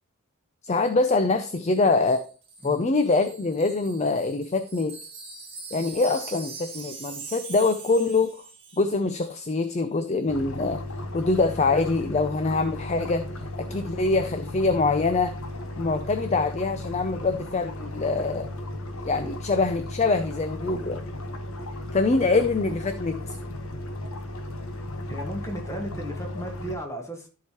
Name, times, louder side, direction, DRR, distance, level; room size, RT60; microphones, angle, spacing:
voice 1, 0.6-2.2 2.6-5.0 5.7-8.4 8.8-10.8 11.1-13.2 13.6-15.4 15.8-18.5 19.0-21.0 21.9-23.4, left 3 dB, 30° left, 9 dB, 0.5 m, -24 dB
Wind chime, 1.7-8.9 9.2-9.4, right 4 dB, 25° right, 1.7 m, -42 dB
sound 1, 10.3-26.8, left 1 dB, 75° left, 1.2 m, -35 dB
voice 2, 25.1-27.3, right 1 dB, 15° left, 2 dB, 1.5 m, -35 dB
14.0 x 4.7 x 3.0 m, 0.37 s
head